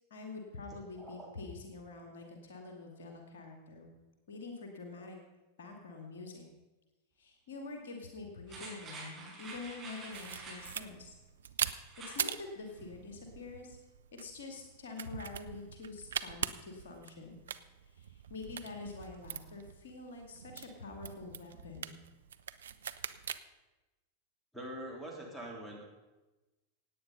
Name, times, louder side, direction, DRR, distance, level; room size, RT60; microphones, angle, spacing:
voice 1, 0.1-3.9 4.3-5.2 5.6-6.4 7.2-11.1 12.1-13.8 14.1-17.4 17.9-21.9, left 3 dB, 60° left, 3 dB, 2.3 m, -46 dB
voice 2, 1.0-1.3 24.5-25.9, right 1 dB, 5° left, 0 dB, 3.5 m, -44 dB
sound 1, 8.5-10.8 11.8-12.2 12.6-12.7, right 3 dB, 25° right, 5.6 m, -47 dB
sound 2, 10.1-23.4, right 8 dB, 65° right, 0.5 m, -42 dB
17.0 x 9.1 x 5.4 m, 1.1 s
figure-of-eight pair, 90°, 0 cm